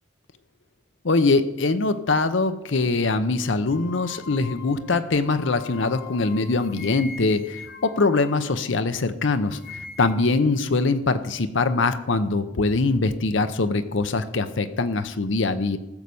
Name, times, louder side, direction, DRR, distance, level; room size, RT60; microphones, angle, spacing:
voice 1, 1.0-9.6 10.0-15.8, left 3 dB, 70° left, 10 dB, 0.7 m, -23 dB
sound 1, 3.7-9.0 9.3-10.4, left 6 dB, 50° left, 1.0 m, -43 dB
15.5 x 6.4 x 7.0 m, 0.93 s
head